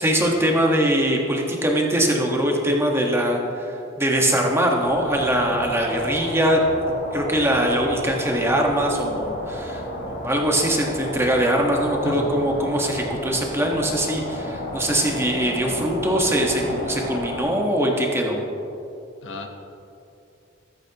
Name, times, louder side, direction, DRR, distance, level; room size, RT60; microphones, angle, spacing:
voice 1, 0.0-6.6 7.1-18.4, right 1 dB, 15° right, 0 dB, 1.4 m, -22 dB
sound 1, 4.8-17.4, left 1 dB, 50° left, 2.2 m, -32 dB
voice 2, 12.0-12.3 19.2-19.5, left 2 dB, 65° left, 4 dB, 1.0 m, -32 dB
14.0 x 13.0 x 3.0 m, 2.7 s
head